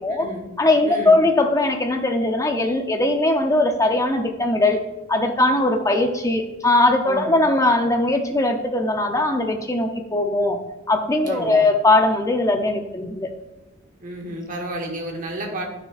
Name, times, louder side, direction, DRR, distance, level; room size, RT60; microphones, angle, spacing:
voice 1, 0.1-0.5 0.8-1.2 7.0-7.4 11.2-11.6 14.0-15.7, right 1 dB, 40° right, 1 dB, 1.2 m, -31 dB
voice 2, 0.6-4.8 5.1-10.6 10.9-13.3, left 2 dB, 15° left, 5 dB, 0.5 m, -20 dB
9.6 x 6.3 x 2.4 m, 1.1 s
head